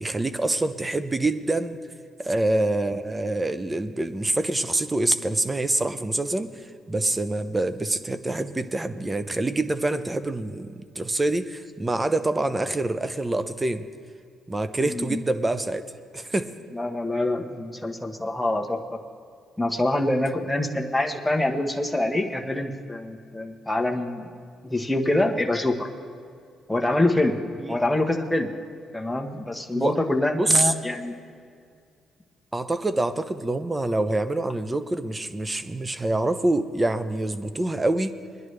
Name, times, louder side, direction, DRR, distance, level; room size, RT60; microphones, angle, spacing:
voice 1, 0.0-1.8 2.2-6.5 6.9-13.9 14.5-15.8 16.1-16.5 29.7-30.0 30.4-30.7 32.5-38.1, right 2 dB, 20° right, 11 dB, 0.7 m, -25 dB
voice 2, 14.8-15.2 16.7-19.0 19.6-24.3 24.6-25.9 26.7-27.4 27.7-28.5 28.9-31.2, left 1 dB, 5° left, 2 dB, 1.1 m, -25 dB
21.5 x 10.5 x 3.3 m, 2.2 s
cardioid pair, 90°, 0 cm